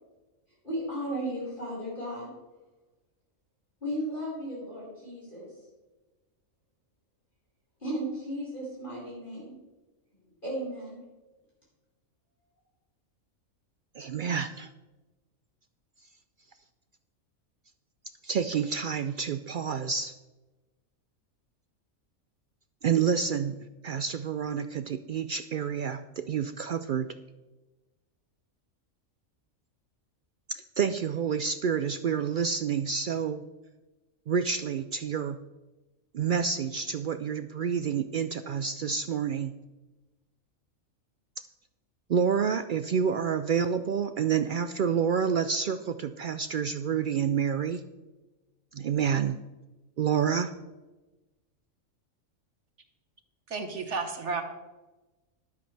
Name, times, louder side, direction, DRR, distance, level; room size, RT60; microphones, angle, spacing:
voice 1, 0.6-2.3 3.8-5.5 7.8-9.5 10.4-11.0, right 1 dB, 40° left, -7 dB, 4.9 m, -35 dB
voice 2, 13.9-14.7 18.2-20.1 22.8-23.6 23.8-27.1 30.5-33.4 34.3-35.4 36.1-39.5 42.1-47.8 48.7-49.4 50.0-50.5, right 7 dB, 80° right, 10 dB, 0.4 m, -28 dB
voice 3, 53.5-54.4, right 4 dB, 60° right, 6 dB, 1.4 m, -32 dB
13.0 x 12.0 x 3.3 m, 1.1 s
omnidirectional pair, 1.4 m